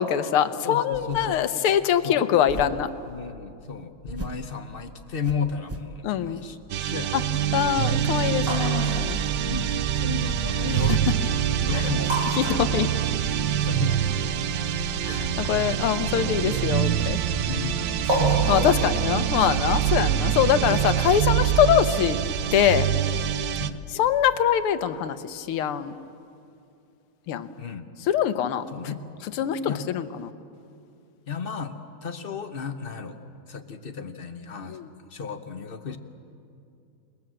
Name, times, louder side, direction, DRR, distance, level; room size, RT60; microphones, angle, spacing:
voice 1, 0.0-2.9 6.0-6.4 7.5-9.2 12.4-12.9 15.0-17.2 18.5-22.2 22.5-22.9 23.9-25.9 27.3-27.5 28.1-28.7 29.4-30.1 34.7-34.9, left 9 dB, 80° left, 12 dB, 1.8 m, -23 dB
voice 2, 0.6-1.4 2.0-2.2 3.1-7.2 9.5-11.0 11.4-12.2 13.4-14.6 17.5-17.9 18.5-18.7 23.5-23.8 27.6-27.9 28.7-29.0 29.7-29.8 31.3-31.7 32.0-33.2 33.5-34.8 35.1-36.0, left 5 dB, 45° left, 7 dB, 0.7 m, -34 dB
sound 1, 0.9-1.5 2.5-2.9 4.0-4.5 5.2-6.0, right 1 dB, 20° right, 0.3 m, -38 dB
sound 2, 6.7-23.7, right 11 dB, 70° right, 1.3 m, -25 dB
sound 3, 7.2-23.4, equal, 50° right, 8.2 m, -34 dB
28.5 x 20.0 x 7.7 m, 2.5 s
omnidirectional pair, 2.4 m